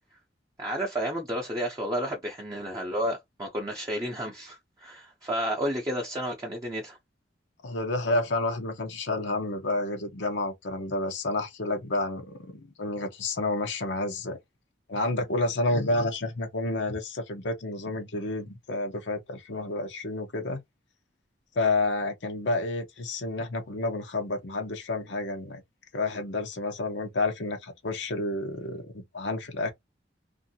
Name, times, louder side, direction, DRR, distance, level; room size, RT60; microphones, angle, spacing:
voice 1, 0.6-7.0, equal, 20° right, 0.6 m, -31 dB
voice 2, 7.6-14.4 14.9-20.6 21.6-25.6 25.9-29.7, left 2 dB, 75° left, 0.7 m, -30 dB
2.6 x 2.5 x 2.7 m
head